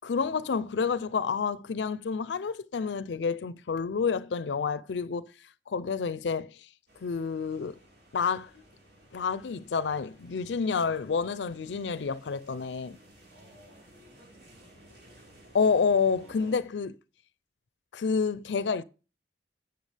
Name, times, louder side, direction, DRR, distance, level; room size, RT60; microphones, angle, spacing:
voice 1, 0.0-5.3 5.7-6.7 7.0-7.8 8.1-8.5 9.1-13.0 15.5-16.9 17.9-18.8, left 5 dB, 80° left, 0.5 m, -29 dB
sound 1, 6.9-16.6, right 1 dB, 75° right, 5.9 m, -56 dB
voice 2, 13.3-14.9 16.2-16.6, equal, 55° right, 5.7 m, -58 dB
11.5 x 7.9 x 3.3 m
head